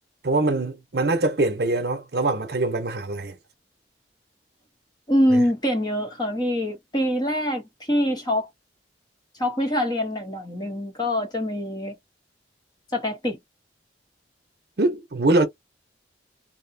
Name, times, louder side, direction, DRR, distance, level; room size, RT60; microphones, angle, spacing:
voice 1, 0.2-3.4 5.3-5.4 14.8-15.5, right 2 dB, 55° right, 0.7 m, -23 dB
voice 2, 5.1-8.5 9.4-11.9 12.9-13.4, equal, 20° left, 0.8 m, -24 dB
2.7 x 2.1 x 2.6 m
head